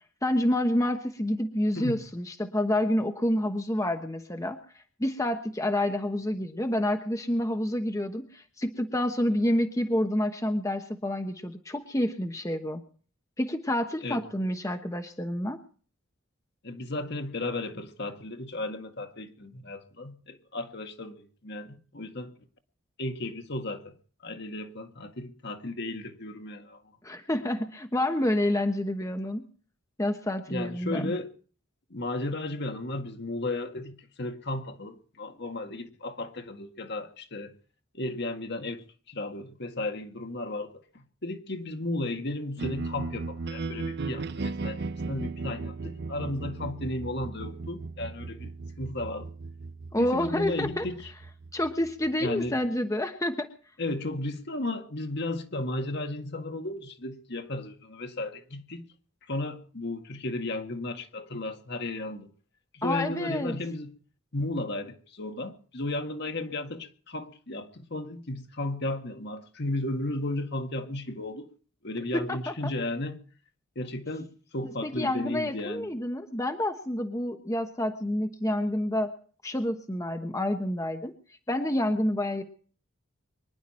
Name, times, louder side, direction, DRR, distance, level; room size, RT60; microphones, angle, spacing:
voice 1, 0.2-4.6 5.0-12.8 13.4-15.6 27.0-29.5 30.0-31.1 49.9-50.9 51.5-53.5 62.8-63.6 72.1-72.5 74.8-79.1 79.4-81.1 81.5-82.4, left 1 dB, 15° left, 1.1 m, -28 dB
voice 2, 16.6-22.3 23.0-23.9 24.2-26.8 30.5-31.3 31.9-37.5 37.9-48.5 48.8-49.3 50.0-51.1 52.2-52.6 53.8-58.9 59.3-62.3 62.7-63.9 64.3-71.5 71.8-73.2 73.8-75.9, left 2 dB, 55° left, 1.9 m, -34 dB
sound 1, 42.6-52.7, right 3 dB, 55° right, 0.7 m, -37 dB
24.5 x 11.5 x 4.3 m
head